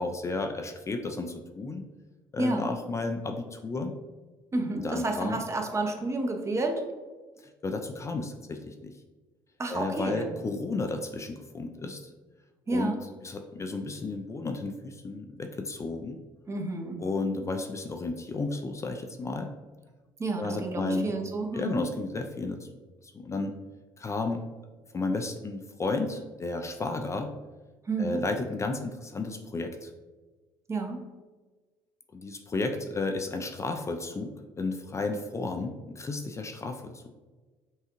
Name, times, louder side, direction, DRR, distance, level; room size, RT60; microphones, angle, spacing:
voice 1, 0.0-1.8 2.3-3.9 4.8-5.4 7.6-8.9 9.7-12.0 12.7-12.9 13.2-16.2 17.0-19.5 20.4-21.1 21.5-22.7 23.0-23.5 24.0-24.4 24.9-27.3 28.0-29.9 32.1-37.1, left 3 dB, 30° left, 5 dB, 0.4 m, -33 dB
voice 2, 2.4-2.7 4.5-6.8 9.6-10.3 12.7-13.0 16.5-17.0 20.2-21.8 27.9-28.2 30.7-31.0, right 2 dB, 25° right, 4 dB, 0.7 m, -30 dB
5.5 x 2.3 x 3.0 m, 1.3 s
supercardioid pair, 75°, 10 cm